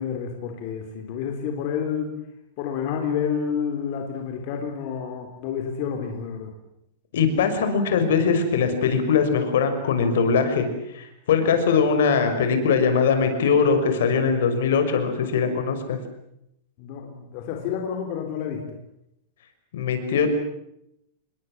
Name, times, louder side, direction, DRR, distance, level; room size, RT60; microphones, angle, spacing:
voice 1, 0.0-2.1 2.6-6.5 16.8-18.7, left 7 dB, 40° left, 3 dB, 3.9 m, -29 dB
voice 2, 7.1-10.7 10.9-16.0 19.7-20.3, left 5 dB, 75° left, 8 dB, 5.9 m, -21 dB
28.0 x 22.5 x 7.6 m, 0.80 s
supercardioid pair, 175°, 0 cm